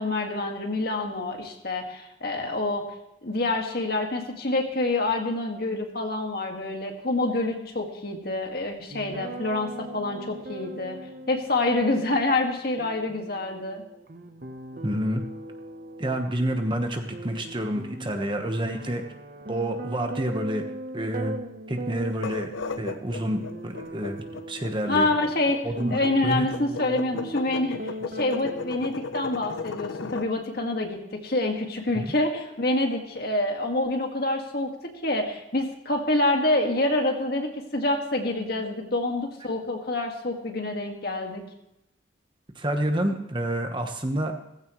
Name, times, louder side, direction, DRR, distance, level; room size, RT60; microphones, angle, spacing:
voice 1, 0.0-2.8 3.2-11.0 11.3-13.8 24.9-25.6 25.9-27.8 28.0-34.7 35.0-41.4, left 2 dB, 50° left, 3 dB, 1.9 m, -27 dB
sound 1, 8.9-28.7, right 1 dB, 45° right, 1.0 m, -40 dB
voice 2, 14.8-15.2 16.0-19.0 19.5-20.6 20.9-21.4 21.7-22.5 22.8-25.1 25.6-26.5 31.9-32.0 42.5-44.3, right 1 dB, 25° right, 5 dB, 1.2 m, -28 dB
sound 2, 22.1-30.3, left 4 dB, 80° left, 0.8 m, -35 dB
16.5 x 15.5 x 3.1 m, 0.85 s
head